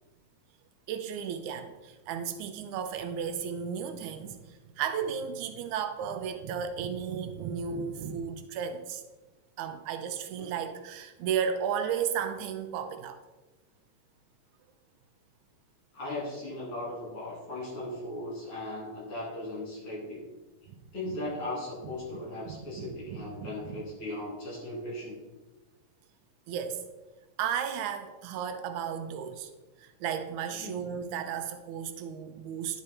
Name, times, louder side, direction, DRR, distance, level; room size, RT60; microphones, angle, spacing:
voice 1, 0.9-9.0 9.6-13.2 20.7-20.8 22.5-23.8 26.5-26.8 27.4-29.5 29.8-32.8, right 7 dB, 85° right, 8 dB, 2.1 m, -34 dB
voice 2, 15.9-20.2 20.9-25.2 30.6-30.8, left 1 dB, 50° left, -5 dB, 3.7 m, -37 dB
10.0 x 5.0 x 4.2 m, 1.2 s
omnidirectional pair, 3.4 m